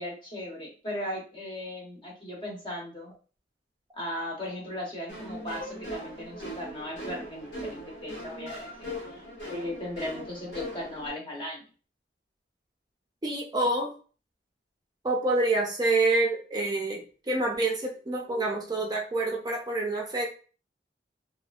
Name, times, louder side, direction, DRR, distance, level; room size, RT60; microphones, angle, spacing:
voice 1, 0.0-3.1 3.9-8.9 9.5-11.6, left 1 dB, 30° left, -2 dB, 0.8 m, -37 dB
sound 1, 5.1-11.1, equal, 70° left, 1.1 m, -39 dB
voice 2, 13.2-13.9 15.0-20.3, right 2 dB, 25° right, -1 dB, 0.5 m, -27 dB
2.6 x 2.4 x 2.3 m, 0.37 s
head